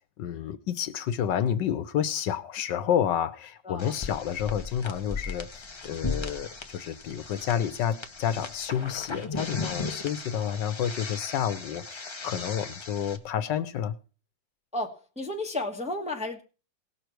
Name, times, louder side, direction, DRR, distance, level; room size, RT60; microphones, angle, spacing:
voice 1, 0.2-13.9, left 9 dB, 75° left, 1.4 m, -30 dB
voice 2, 3.6-4.0 10.3-10.5 14.7-16.4, left 2 dB, 5° right, 1.1 m, -34 dB
sound 1, 3.8-13.2, left 4 dB, 30° left, 0.5 m, -37 dB
18.5 x 6.6 x 4.6 m
omnidirectional pair, 2.0 m